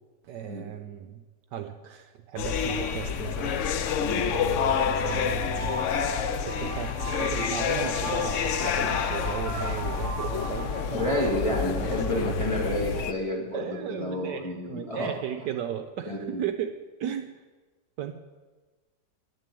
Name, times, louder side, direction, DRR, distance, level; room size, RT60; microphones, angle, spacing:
voice 1, 0.2-1.2 1.5-5.8 6.1-12.5 13.5-16.7 17.0-17.3 18.0-18.1, right 10 dB, 70° right, 6 dB, 1.2 m, -36 dB
sound 1, 2.4-13.1, left 7 dB, 85° left, 0.6 m, -28 dB
sound 2, 4.8-11.6, right 2 dB, 30° right, 2.4 m, -37 dB
voice 2, 10.9-15.1 16.1-16.4, left 1 dB, 15° left, -3 dB, 2.6 m, -30 dB
11.0 x 7.6 x 9.0 m, 1.3 s
omnidirectional pair, 2.0 m